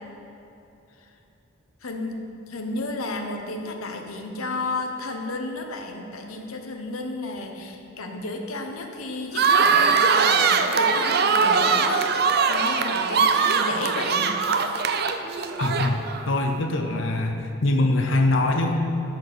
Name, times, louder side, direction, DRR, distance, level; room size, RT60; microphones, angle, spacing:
voice 1, 1.8-12.1 12.5-14.4, left 2 dB, 90° left, 3 dB, 1.0 m, -32 dB
sound 1, 9.3-16.3, right 5 dB, 50° right, 0.5 m, -21 dB
voice 2, 15.6-18.9, left 2 dB, 60° left, 3 dB, 0.7 m, -23 dB
13.0 x 4.4 x 6.2 m, 2.9 s
head